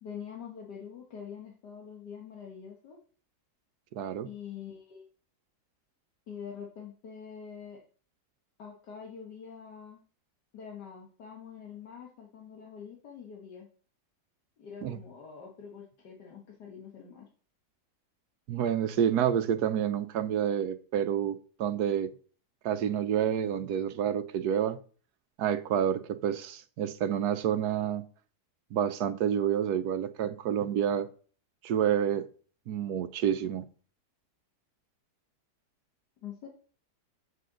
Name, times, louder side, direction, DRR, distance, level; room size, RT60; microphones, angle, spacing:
voice 1, 0.0-3.0 4.2-5.1 6.3-7.8 8.6-10.0 10.5-13.7 14.6-17.3 36.2-36.5, left 7 dB, 90° left, 2.0 m, -45 dB
voice 2, 3.9-4.3 14.8-15.0 18.5-22.1 22.6-24.8 25.4-28.0 28.7-31.1 31.6-32.3 32.7-33.6, right 9 dB, 75° right, 1.2 m, -28 dB
8.3 x 7.6 x 3.9 m
omnidirectional pair, 1.7 m